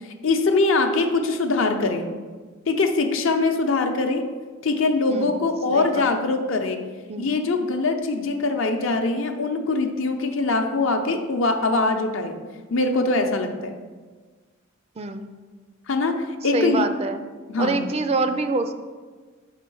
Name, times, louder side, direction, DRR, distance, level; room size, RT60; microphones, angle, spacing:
voice 1, 0.2-2.1 2.7-4.3 4.6-6.8 7.2-12.4 12.7-13.8 15.9-16.9 17.5-17.9, left 3 dB, 65° left, 5 dB, 0.7 m, -22 dB
voice 2, 5.1-6.3 7.1-7.4 15.0-15.3 16.4-17.2 17.6-18.7, right 3 dB, 30° right, 9 dB, 0.3 m, -26 dB
6.3 x 4.3 x 5.4 m, 1.4 s
head